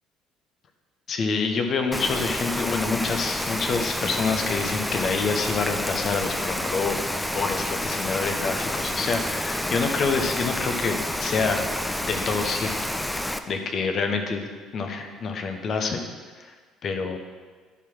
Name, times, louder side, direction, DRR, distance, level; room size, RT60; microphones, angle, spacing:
voice 1, 1.1-7.0 7.3-11.7 12.0-12.7 13.5-16.0 16.4-16.5 16.8-17.2, left 4 dB, 50° left, 5 dB, 1.2 m, -27 dB
Rain, 1.9-13.4, left 1 dB, 5° left, 0.6 m, -29 dB
10.5 x 4.9 x 6.1 m, 1.5 s
figure-of-eight pair, 50°, 0 cm